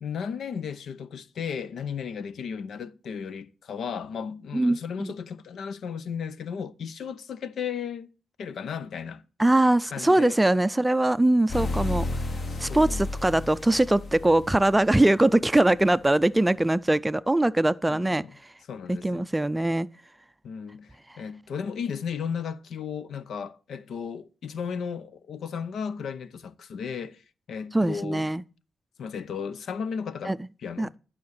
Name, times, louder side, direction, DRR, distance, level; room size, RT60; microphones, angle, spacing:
voice 1, 0.0-8.1 8.4-9.2 9.9-10.4 12.5-13.1 17.9-18.4 18.7-19.3 20.4-27.2 27.5-28.3 29.0-30.9, left 6 dB, 75° left, 0.7 m, -35 dB
voice 2, 4.5-5.1 9.4-12.0 12.6-18.2 18.9-19.9 27.7-28.4 30.3-30.4 30.8-30.9, right 1 dB, 10° right, 0.4 m, -22 dB
sound 1, 11.5-15.1, left 2 dB, 45° left, 1.5 m, -32 dB
12.0 x 5.9 x 6.7 m
cardioid pair, 95°, 0 cm